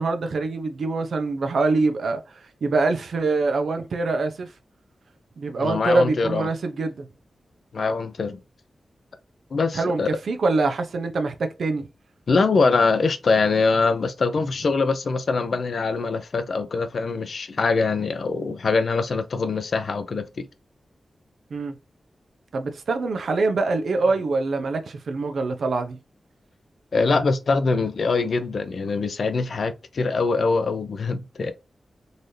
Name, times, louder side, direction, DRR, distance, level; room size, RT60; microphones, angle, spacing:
voice 1, 0.0-2.2 2.6-4.5 5.4-7.1 9.7-11.9 21.5-21.7 22.5-26.0, right 3 dB, 75° right, 0.7 m, -24 dB
voice 2, 5.6-6.5 7.7-8.4 9.5-10.1 12.3-20.5 26.9-31.5, left 4 dB, 65° left, 0.6 m, -23 dB
4.0 x 2.7 x 3.2 m
wide cardioid pair, 90°, 0 cm